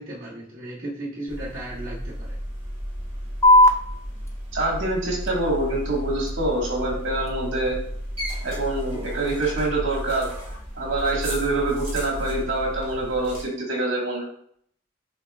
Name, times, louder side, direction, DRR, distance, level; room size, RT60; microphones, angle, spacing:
voice 1, 0.0-2.4, right 1 dB, 45° right, -8 dB, 1.1 m, -35 dB
sound 1, 1.3-13.4, equal, 30° right, 1.8 m, -33 dB
sound 2, 3.4-10.4, left 1 dB, 15° left, 0.3 m, -25 dB
voice 2, 4.5-7.8 8.4-10.3 10.7-14.2, right 2 dB, 70° right, -2 dB, 1.6 m, -25 dB
6.2 x 3.4 x 2.4 m, 0.66 s
head